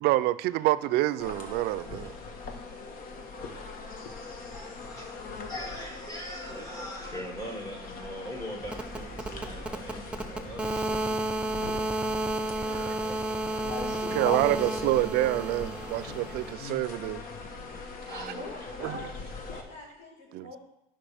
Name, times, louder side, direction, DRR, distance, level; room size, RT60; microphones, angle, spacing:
voice 1, 0.0-2.1 12.7-13.0 14.1-17.2 18.1-18.3 18.8-18.9 20.3-20.5, right 16 dB, 70° right, 0.4 m, -27 dB
sound 1, 1.2-19.6, left 3 dB, 60° left, 1.3 m, -41 dB
voice 2, 4.5-11.0 11.4-12.3 12.7-13.2 13.8-14.2 14.4-15.1 18.1-18.4 19.5-19.6, equal, 20° left, 2.3 m, -42 dB
sound 2, 8.6-16.5, right 1 dB, 5° right, 0.8 m, -32 dB
voice 3, 18.2-19.2 19.5-20.6, left 2 dB, 80° left, 3.5 m, -44 dB
11.5 x 5.5 x 3.4 m
supercardioid pair, 90°, 17 cm